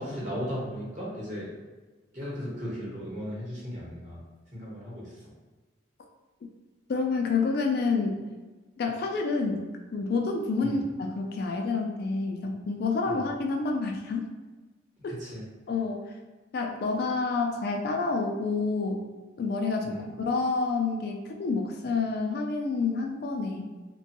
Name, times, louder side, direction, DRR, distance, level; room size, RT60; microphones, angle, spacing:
voice 1, 0.0-1.5 2.1-4.2 4.5-5.3 10.6-10.8 13.0-13.2 15.0-15.4 19.8-20.1, equal, 40° right, -6 dB, 1.0 m, -36 dB
voice 2, 6.9-8.2 8.8-9.6 9.9-14.3 15.0-15.2 15.7-16.1 16.5-19.0 19.4-23.7, left 4 dB, 50° left, 2 dB, 0.3 m, -28 dB
2.9 x 2.2 x 2.8 m, 1.3 s
head